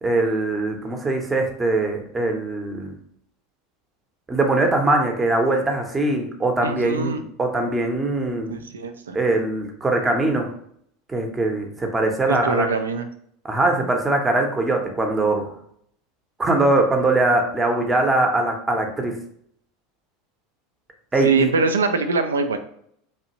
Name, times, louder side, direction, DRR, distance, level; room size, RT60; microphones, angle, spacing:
voice 1, 0.0-2.9 4.3-8.6 9.1-10.5 11.1-12.7 13.4-15.5 16.4-19.2 21.1-21.5, right 2 dB, 20° right, 3 dB, 0.7 m, -22 dB
voice 2, 6.6-7.2 8.5-9.2 12.3-13.1 21.2-22.6, right 5 dB, 80° right, 8 dB, 0.3 m, -22 dB
2.9 x 2.4 x 2.8 m, 0.66 s
figure-of-eight pair, 80°, 0 cm